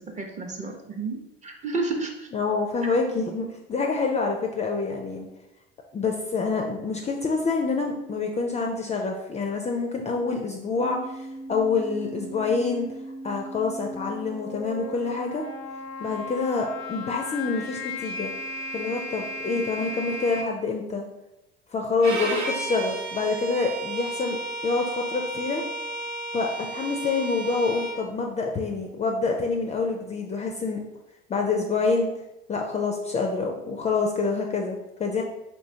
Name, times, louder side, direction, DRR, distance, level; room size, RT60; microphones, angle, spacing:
voice 1, 0.0-2.3, right 3 dB, 25° right, 2 dB, 0.6 m, -31 dB
voice 2, 2.3-5.3 5.9-12.9 13.2-15.4 16.0-18.3 18.7-21.1 21.7-24.4 24.6-25.6 26.3-30.8 31.3-32.1 32.5-35.2, left 4 dB, 20° left, 2 dB, 0.4 m, -27 dB
sound 1, 10.8-20.4, left 1 dB, 90° left, 0.5 m, -36 dB
Bowed string instrument, 22.0-28.0, right 2 dB, 85° right, 1.0 m, -32 dB
3.1 x 3.0 x 2.7 m, 0.92 s
hypercardioid pair, 80°, 31 cm